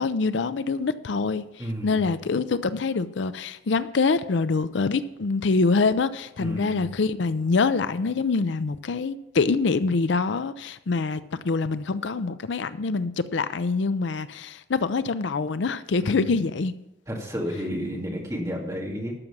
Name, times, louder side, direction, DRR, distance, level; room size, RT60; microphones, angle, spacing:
voice 1, 0.0-16.7, left 4 dB, 70° left, 14 dB, 0.5 m, -25 dB
voice 2, 1.6-2.1 6.4-6.9 16.0-16.4 17.1-19.1, equal, 15° right, -1 dB, 2.2 m, -32 dB
13.0 x 6.0 x 7.2 m, 0.89 s
head